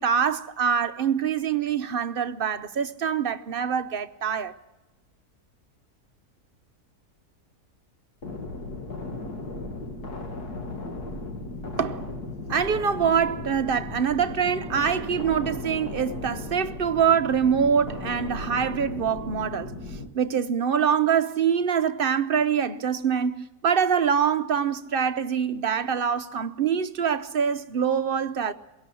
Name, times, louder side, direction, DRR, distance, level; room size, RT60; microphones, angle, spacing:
voice 1, 0.0-4.5 11.8-12.0 12.5-19.7 20.1-28.5, right 7 dB, 45° right, 0.7 m, -24 dB
sound 1, 8.2-20.1, left 2 dB, 80° left, 2.4 m, -36 dB
22.5 x 17.5 x 7.0 m
omnidirectional pair, 1.7 m